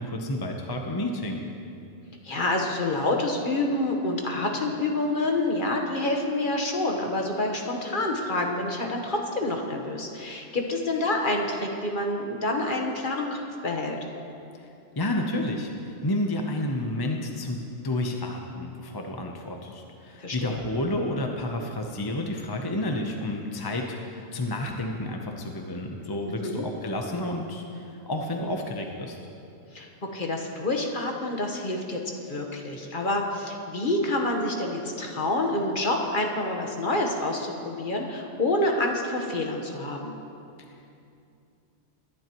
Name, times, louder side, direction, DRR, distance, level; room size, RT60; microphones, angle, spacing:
voice 1, 0.0-1.4 15.0-29.2, left 1 dB, 20° left, 2 dB, 0.7 m, -30 dB
voice 2, 2.2-14.0 20.2-20.6 26.2-26.6 29.7-32.0 32.3-40.1, left 2 dB, 40° left, 1 dB, 1.3 m, -28 dB
21.0 x 11.0 x 3.0 m, 2.6 s
omnidirectional pair, 1.3 m